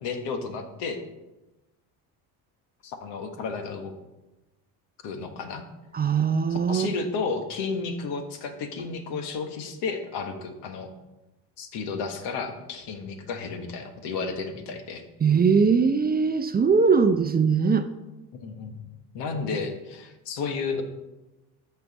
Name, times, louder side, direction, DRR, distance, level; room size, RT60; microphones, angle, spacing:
voice 1, 0.0-1.0 2.8-3.9 5.0-5.6 6.5-10.9 11.6-15.0 18.3-18.8 19.1-20.8, left 4 dB, 75° left, 6 dB, 1.4 m, -32 dB
voice 2, 5.9-6.9 15.2-17.9, right 5 dB, 25° right, 10 dB, 0.5 m, -21 dB
13.5 x 4.8 x 4.1 m, 1.0 s
supercardioid pair, 85°, 42 cm